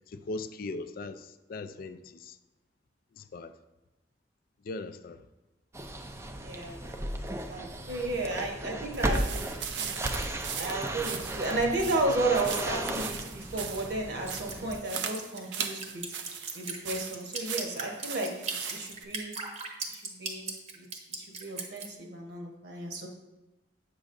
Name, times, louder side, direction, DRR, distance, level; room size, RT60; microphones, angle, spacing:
voice 1, 0.1-2.4 3.2-3.5 4.6-5.2, left 2 dB, 55° left, 0.4 m, -39 dB
sound 1, 5.7-14.8, right 1 dB, 15° right, 0.4 m, -36 dB
voice 2, 6.4-9.9 10.6-16.0 16.5-19.3 19.9-23.1, right 2 dB, 65° right, 1.2 m, -33 dB
sound 2, 8.9-19.0, right 7 dB, 85° right, 0.6 m, -39 dB
Drip, 14.3-21.9, right 4 dB, 40° right, 0.9 m, -37 dB
8.0 x 6.1 x 2.6 m
head